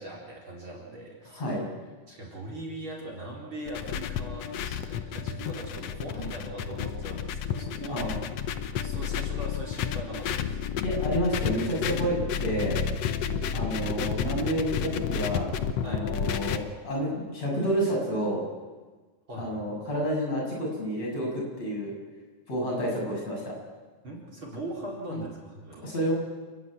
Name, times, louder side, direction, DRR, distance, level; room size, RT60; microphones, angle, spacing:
voice 1, 0.0-1.4 2.1-8.2 8.8-10.6 15.8-16.2 19.3-19.5 24.0-25.9, right 1 dB, 35° right, -1 dB, 4.8 m, -40 dB
voice 2, 1.2-1.6 7.9-8.2 10.8-12.1 12.4-12.8 13.5-15.5 15.8-18.4 19.4-21.9 22.5-23.5 25.1-25.2 25.8-26.1, equal, 50° left, -3 dB, 8.3 m, -29 dB
sound 1, 3.7-16.6, left 7 dB, 65° left, 1.8 m, -31 dB
29.0 x 11.5 x 9.8 m, 1.3 s
omnidirectional pair, 3.8 m